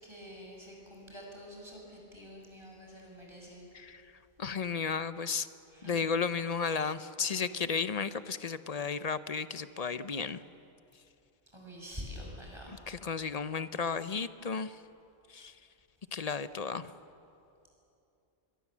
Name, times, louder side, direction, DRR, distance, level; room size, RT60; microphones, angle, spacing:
voice 1, 0.0-3.7 5.7-6.1 11.5-12.8 15.4-15.5, equal, 25° right, -1 dB, 6.2 m, -47 dB
voice 2, 4.4-5.5 5.9-10.4 12.9-14.7 15.3-15.5 16.1-16.9, left 5 dB, 45° left, 13 dB, 0.6 m, -33 dB
24.0 x 23.0 x 7.3 m, 2.7 s
omnidirectional pair, 1.1 m